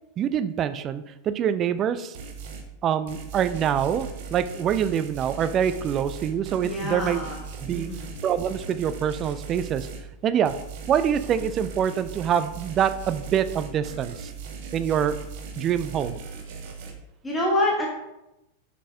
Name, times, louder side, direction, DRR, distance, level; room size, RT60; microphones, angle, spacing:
voice 1, 0.2-2.2 2.8-7.2 7.6-7.9 8.2-9.9 10.2-10.5 10.9-14.3 14.7-15.1 15.6-16.2, right 9 dB, 30° right, 12 dB, 0.4 m, -25 dB
sound 1, 2.1-2.7 3.1-10.1 10.5-16.9, right 5 dB, 50° right, 0.9 m, -38 dB
voice 2, 6.6-7.4 7.7-8.1 17.2-17.9, left 1 dB, 10° left, -3 dB, 1.3 m, -26 dB
6.5 x 5.3 x 2.7 m, 0.91 s
figure-of-eight pair, 90°, 0 cm